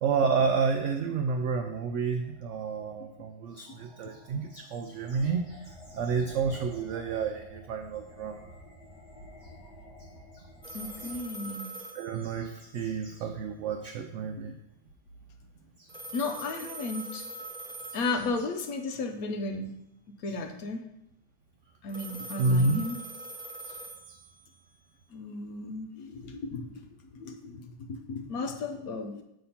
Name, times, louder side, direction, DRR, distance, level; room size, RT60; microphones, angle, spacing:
voice 1, 0.0-8.4 10.3-11.1 11.9-14.5 15.8-15.9 22.4-22.9 23.6-23.7 24.1-24.2, right 4 dB, 80° right, 5 dB, 0.6 m, -30 dB
sound 1, 2.2-11.2, left 1 dB, 45° left, 1.1 m, -51 dB
sound 2, 10.6-12.9 15.9-18.8 21.9-24.8, right 2 dB, 5° left, 0.4 m, -43 dB
voice 2, 10.7-11.6 14.4-14.5 16.1-17.3 17.9-19.7 20.2-20.9 21.8-23.0 25.1-29.2, left 3 dB, 65° left, 5 dB, 1.1 m, -34 dB
6.8 x 3.4 x 5.6 m, 0.79 s
omnidirectional pair, 1.8 m